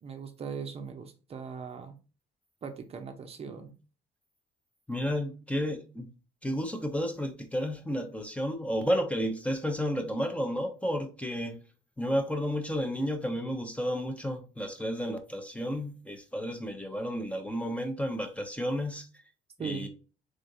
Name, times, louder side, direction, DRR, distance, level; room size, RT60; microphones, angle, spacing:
voice 1, 0.0-2.0 2.6-3.7 19.6-19.9, right 5 dB, 35° right, 0.6 m, -39 dB
voice 2, 4.9-6.1 6.4-11.6 12.0-19.1 19.6-19.9, equal, 10° left, 0.6 m, -32 dB
3.7 x 3.4 x 2.6 m
cardioid pair, 110°, 17 cm